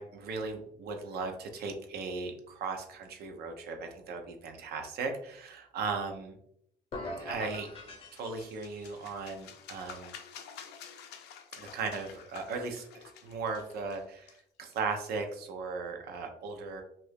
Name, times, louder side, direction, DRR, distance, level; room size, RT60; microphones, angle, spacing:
voice 1, 0.0-6.4 7.2-7.7 8.1-10.1 11.6-16.8, right 4 dB, 70° right, 4 dB, 0.6 m, -37 dB
sound 1, 6.9-9.0, left 1 dB, 35° left, 0.7 m, -42 dB
sound 2, 7.9-15.4, left 8 dB, 80° left, 0.5 m, -50 dB
2.7 x 2.5 x 3.4 m, 0.71 s
cardioid pair, 110°, 17 cm